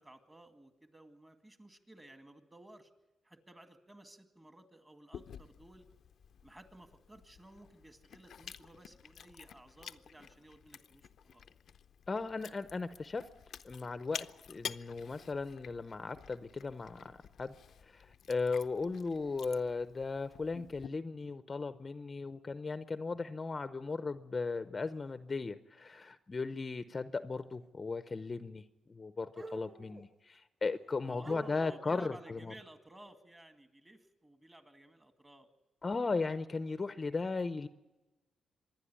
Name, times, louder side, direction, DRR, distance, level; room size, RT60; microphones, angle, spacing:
voice 1, 0.0-2.9 3.2-5.9 6.4-11.5 31.1-35.5, right 1 dB, 15° right, 8 dB, 2.1 m, -56 dB
Chewing mastication, 5.1-20.9, left 8 dB, 65° left, 0.6 m, -51 dB
voice 2, 12.1-13.3 13.6-17.5 17.8-32.5 35.8-37.7, left 4 dB, 30° left, 12 dB, 0.7 m, -37 dB
sound 1, 22.3-22.4 23.8-23.9 24.9-25.1 27.6-27.7 29.3-30.1 30.8-30.9 31.2-32.0, right 2 dB, 30° right, 2.7 m, -48 dB
25.5 x 10.5 x 9.7 m, 1.1 s
cardioid pair, 100°, 0 cm